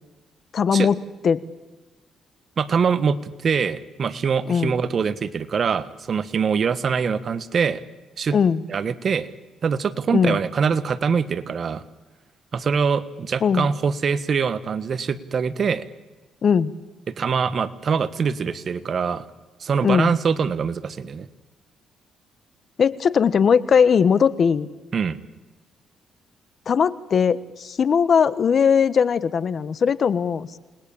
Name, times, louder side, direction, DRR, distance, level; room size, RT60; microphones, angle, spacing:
voice 1, 0.5-1.4 4.5-4.8 8.3-8.6 10.1-10.4 13.4-13.7 16.4-16.7 19.8-20.1 22.8-24.7 26.7-30.5, left 6 dB, 50° left, 17 dB, 1.2 m, -19 dB
voice 2, 2.6-7.8 8.2-8.4 8.7-9.3 9.6-11.8 12.5-15.9 17.1-19.2 19.6-21.3 24.9-25.2, right 6 dB, 50° right, 14 dB, 1.5 m, -23 dB
28.5 x 20.5 x 8.8 m, 1.2 s
cardioid pair, 90°, 0 cm